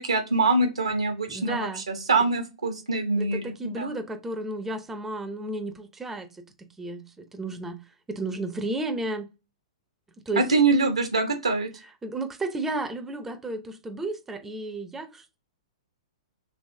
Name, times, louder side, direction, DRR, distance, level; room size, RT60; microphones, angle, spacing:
voice 1, 0.0-4.0 10.4-11.7, right 3 dB, 80° right, 0.9 m, -24 dB
voice 2, 1.3-1.8 3.2-6.3 6.8-7.0 7.3-7.8 8.1-9.3 10.3-10.4 12.0-15.1, right 2 dB, 10° right, 0.5 m, -32 dB
3.3 x 3.0 x 2.6 m
figure-of-eight pair, 110°, 3 cm